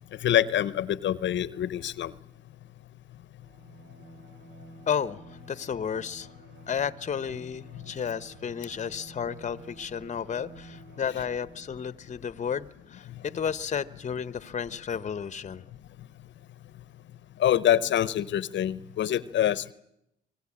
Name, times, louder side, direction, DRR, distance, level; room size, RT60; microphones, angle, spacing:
voice 1, 0.2-2.1 17.4-19.7, left 11 dB, 65° left, 17 dB, 0.8 m, -25 dB
Bowed string instrument, 3.4-12.0, right 3 dB, 70° right, 3.1 m, -52 dB
voice 2, 4.9-6.3 6.7-15.6, left 7 dB, 35° left, 16 dB, 0.9 m, -32 dB
25.0 x 20.0 x 8.6 m, 0.82 s
cardioid pair, 90°, 20 cm